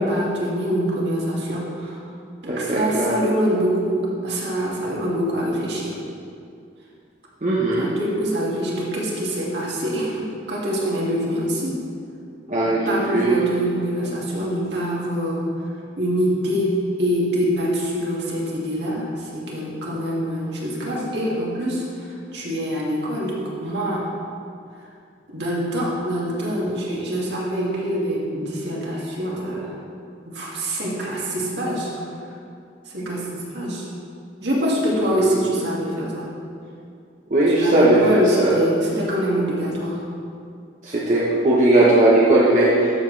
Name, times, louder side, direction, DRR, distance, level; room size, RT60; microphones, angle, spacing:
voice 1, 0.0-2.0 2.4-6.0 7.8-11.8 12.6-15.5 16.0-24.1 25.3-29.7 30.2-31.9 32.9-33.8 34.4-36.3 37.4-40.0, equal, 65° right, -5 dB, 2.1 m, -25 dB
voice 2, 2.5-3.2 7.4-7.9 12.5-13.5 37.3-38.6 40.8-42.9, right 2 dB, 40° right, -6 dB, 1.1 m, -18 dB
12.5 x 7.5 x 3.3 m, 2.4 s
head